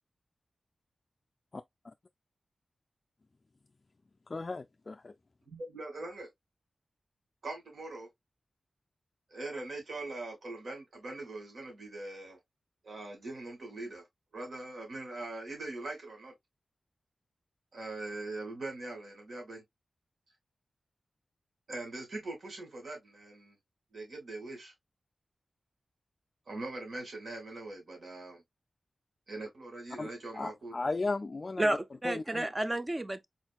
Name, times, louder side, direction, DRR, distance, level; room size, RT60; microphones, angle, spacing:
voice 1, 4.3-5.1 30.0-31.7 32.0-32.5, left 3 dB, 40° left, 0.3 m, -35 dB
voice 2, 5.5-6.3 7.4-8.1 9.3-12.4 12.8-14.0 14.3-16.3 17.7-19.6 21.7-23.5 23.9-24.7 26.5-28.4 29.3-30.7, right 2 dB, 70° right, 2.3 m, -42 dB
voice 3, 31.6-33.3, right 1 dB, 20° right, 0.4 m, -31 dB
4.3 x 4.3 x 2.3 m
wide cardioid pair, 95°, 0 cm